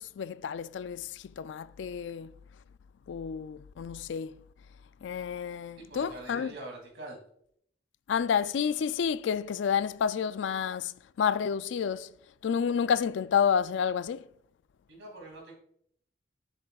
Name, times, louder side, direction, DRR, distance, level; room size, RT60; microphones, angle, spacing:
voice 1, 0.0-2.3 3.1-4.3 5.0-6.5 8.1-12.1 12.4-14.2, left 7 dB, 75° left, 0.3 m, -30 dB
voice 2, 5.8-7.2 14.9-15.5, right 2 dB, 75° right, 2.7 m, -44 dB
9.5 x 7.5 x 2.4 m
head